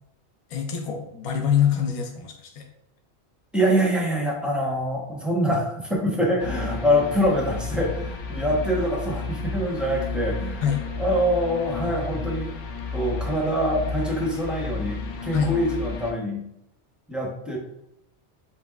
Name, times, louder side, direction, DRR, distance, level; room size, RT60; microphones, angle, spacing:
voice 1, 0.5-2.7 10.6-10.9 15.3-15.5, left 8 dB, 40° left, 3 dB, 0.6 m, -24 dB
voice 2, 3.5-10.6 11.0-12.5 12.9-16.5 17.1-17.6, equal, ahead, -2 dB, 0.8 m, -25 dB
sound 1, 6.4-16.1, left 4 dB, 85° left, 1.0 m, -32 dB
7.4 x 2.8 x 2.3 m, 0.79 s
omnidirectional pair, 1.2 m